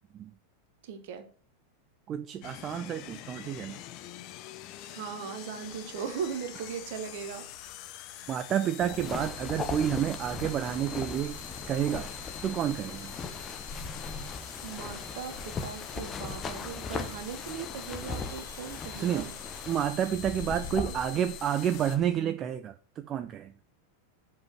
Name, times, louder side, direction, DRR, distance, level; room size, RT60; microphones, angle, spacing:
voice 1, 0.8-1.2 4.9-7.4 14.6-19.3 20.7-20.9, right 7 dB, 50° right, 1.5 m, -39 dB
voice 2, 2.1-3.8 8.3-11.4 11.7-12.1 12.4-13.2 19.0-19.3 19.7-23.5, right 9 dB, 30° right, 0.5 m, -30 dB
sound 1, 2.4-22.0, left 14 dB, 40° left, 0.7 m, -45 dB
sound 2, 5.6-20.7, right 3 dB, 70° right, 3.2 m, -53 dB
sound 3, 8.8-22.2, left 4 dB, 20° left, 1.0 m, -39 dB
7.1 x 5.2 x 5.8 m
figure-of-eight pair, 90°, 0 cm